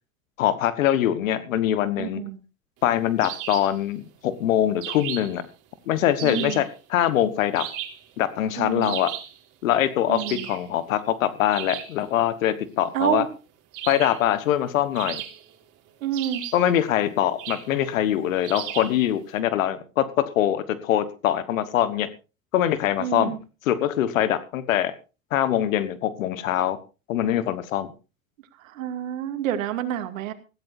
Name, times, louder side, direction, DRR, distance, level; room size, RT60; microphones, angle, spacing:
voice 1, 0.4-2.2 2.8-5.5 5.9-7.7 8.2-9.1 9.6-13.3 13.9-15.2 16.5-22.1 22.5-23.4 23.7-24.9 25.3-26.8 27.1-27.9, left 11 dB, 75° left, 13 dB, 1.4 m, -23 dB
voice 2, 2.0-2.4 6.2-6.6 8.6-9.0 10.1-10.4 12.9-13.3 16.0-16.4 23.0-23.4 28.6-30.3, right 11 dB, 75° right, 8 dB, 2.4 m, -28 dB
sound 1, 3.2-3.8 4.8-5.4 6.2-6.7 7.5-8.1 8.8-9.4 10.1-10.7 11.5-12.0 13.7-14.3 14.9-15.6 16.1-16.7 17.4-17.7 18.4-19.0, right 12 dB, 50° right, 3.4 m, -35 dB
19.5 x 15.5 x 2.7 m, 0.32 s
hypercardioid pair, 80°, 40 cm